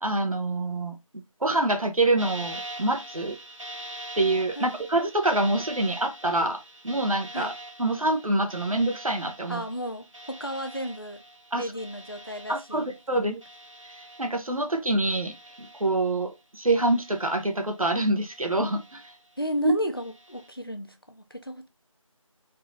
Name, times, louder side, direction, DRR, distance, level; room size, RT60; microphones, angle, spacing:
voice 1, 0.0-1.0 1.4-3.4 4.2-7.5 7.8-9.6 11.5-11.7 12.5-13.4 14.2-19.0 19.6-19.7, right 2 dB, 80° right, 1.0 m, -26 dB
sound 1, 2.2-14.8 15.0-16.3 16.7-17.9 18.3-19.4 20.0-20.5, right 1 dB, 60° right, 1.6 m, -44 dB
voice 2, 9.5-11.2 11.5-13.3 19.4-21.7, equal, 40° left, 0.6 m, -34 dB
4.0 x 2.7 x 3.8 m
figure-of-eight pair, 180°, 18 cm